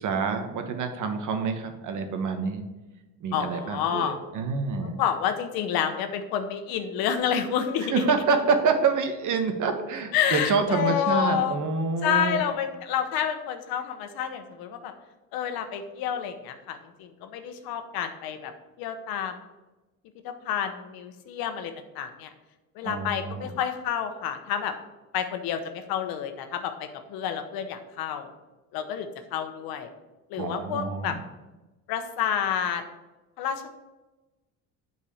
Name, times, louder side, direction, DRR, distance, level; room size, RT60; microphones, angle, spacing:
voice 1, 0.0-2.6 3.2-4.9 7.8-12.4 22.8-23.5 30.4-31.2, right 5 dB, 55° right, 6 dB, 1.3 m, -27 dB
voice 2, 3.3-4.2 4.8-8.0 10.1-11.6 12.0-14.9 15.3-18.5 18.8-19.4 20.2-22.3 22.8-24.7 25.1-28.3 28.7-29.9 30.3-31.2 31.9-32.8 33.4-33.7, left 9 dB, 90° left, 8 dB, 1.1 m, -29 dB
8.4 x 4.7 x 7.1 m, 1.1 s
cardioid pair, 125°, 35 cm